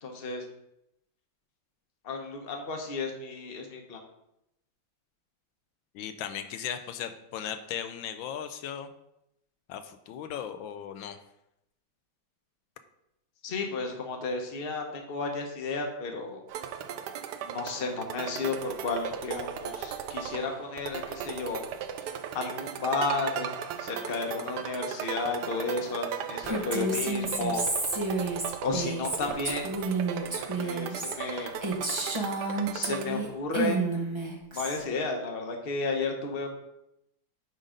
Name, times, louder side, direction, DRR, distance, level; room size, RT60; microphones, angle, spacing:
voice 1, 0.0-0.4 2.0-4.0 13.4-16.4 17.4-21.6 22.3-23.5 23.8-27.6 28.6-29.6 30.2-31.5 32.7-34.3 34.5-36.5, left 3 dB, 35° left, 2 dB, 1.0 m, -33 dB
voice 2, 5.9-8.9 9.7-11.2, left 9 dB, 85° left, 9 dB, 1.4 m, -37 dB
sound 1, 16.5-33.1, right 8 dB, 70° right, 1.0 m, -37 dB
Female speech woman speaking, 26.4-33.3 33.5-34.8, right 3 dB, 25° right, 0.7 m, -31 dB
9.2 x 3.9 x 5.1 m, 0.83 s
omnidirectional pair, 2.1 m